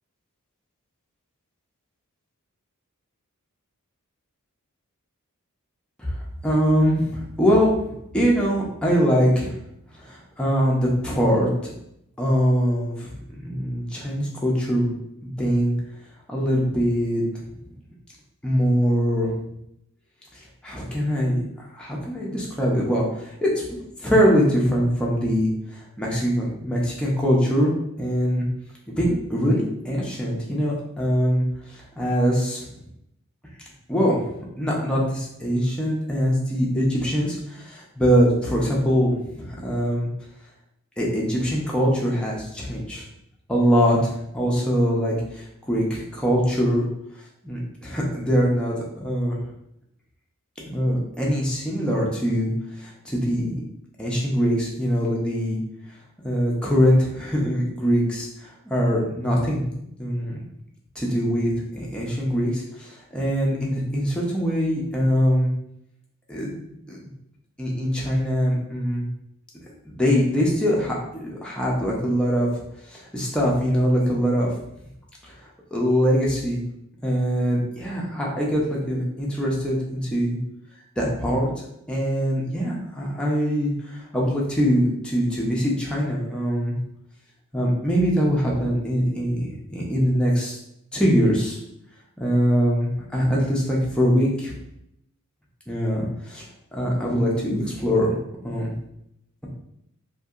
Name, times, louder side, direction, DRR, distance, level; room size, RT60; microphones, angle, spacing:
voice 1, 6.4-9.5 10.0-11.5 12.2-14.9 15.4-15.7 16.3-17.2 18.4-19.3 20.6-28.4 28.9-32.7 33.9-34.3 34.6-40.1 41.0-43.0 43.5-46.9 47.4-49.4 50.6-52.5 52.8-53.6 54.0-55.6 56.2-59.7 60.0-60.4 61.0-65.5 66.3-67.0 67.6-69.1 69.9-72.5 72.9-74.5 75.2-75.3 75.7-76.6 77.0-80.4 81.0-81.5 81.9-86.7 87.5-90.6 90.9-91.6 92.2-94.5 95.7-96.4 96.7-98.2 98.4-98.7, equal, 5° left, -4 dB, 0.5 m, -23 dB
2.7 x 2.7 x 2.4 m, 0.78 s
head